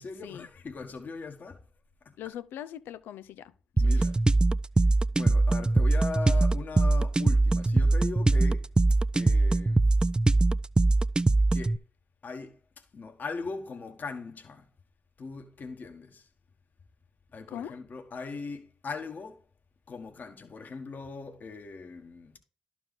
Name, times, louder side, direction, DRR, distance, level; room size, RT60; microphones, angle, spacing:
voice 1, 0.0-1.6 2.0-2.2 3.7-4.3 5.1-9.9 11.5-11.8 12.2-14.7 15.2-16.3 17.3-19.4 19.9-22.4, left 4 dB, 60° left, 1.6 m, -40 dB
voice 2, 2.2-3.5 4.0-4.1 17.5-17.8, left 10 dB, 90° left, 0.5 m, -40 dB
sound 1, 3.8-11.8, right 2 dB, 25° right, 0.4 m, -22 dB
12.0 x 4.6 x 3.6 m
supercardioid pair, 50°, 3 cm